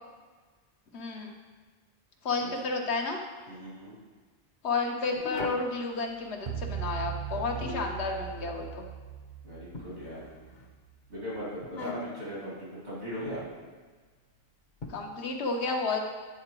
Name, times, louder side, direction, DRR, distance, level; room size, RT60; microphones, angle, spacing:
voice 1, 0.9-1.3 2.2-3.2 4.6-8.9 14.9-16.0, left 3 dB, 80° left, 2 dB, 1.2 m, -31 dB
voice 2, 3.5-3.9 9.4-10.2 11.1-13.4, equal, 85° right, -9 dB, 2.7 m, -39 dB
sound 1, 5.1-5.7 7.2-8.0 9.7-10.6 11.6-12.3 13.2-13.5 14.8-14.9, left 3 dB, 50° left, 0.9 m, -40 dB
sound 2, 6.5-10.9, right 9 dB, 55° right, 0.8 m, -39 dB
9.4 x 3.8 x 4.4 m, 1.4 s
omnidirectional pair, 1.1 m